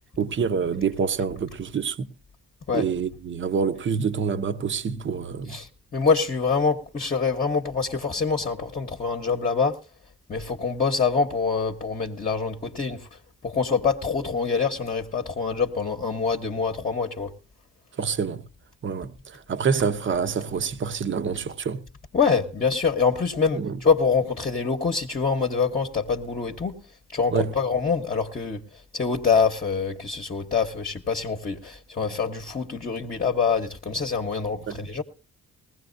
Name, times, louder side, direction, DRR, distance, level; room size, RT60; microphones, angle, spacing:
voice 1, 0.2-2.1 2.7-5.6 18.0-18.4 18.8-21.8 23.5-23.7 27.3-27.5 34.7-34.8, right 6 dB, 40° right, 0.8 m, -27 dB
voice 2, 5.5-9.8 10.3-17.3 22.1-26.8 27.1-35.0, left 5 dB, 30° left, 1.1 m, -25 dB
19.5 x 16.0 x 2.6 m
cardioid pair, 90°, 30 cm